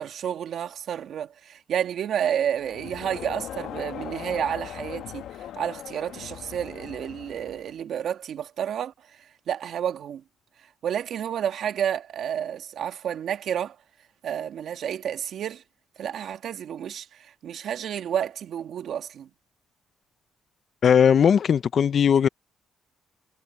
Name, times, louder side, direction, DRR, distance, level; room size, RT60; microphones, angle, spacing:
voice 1, 0.0-10.2 10.8-13.8 14.2-15.6 16.0-19.3, right 9 dB, 70° right, 2.1 m, -30 dB
Crowd, 2.6-7.8, left 11 dB, 80° left, 1.5 m, -39 dB
voice 2, 20.8-22.3, left 7 dB, 55° left, 0.5 m, -18 dB
cardioid pair, 90°, 0 cm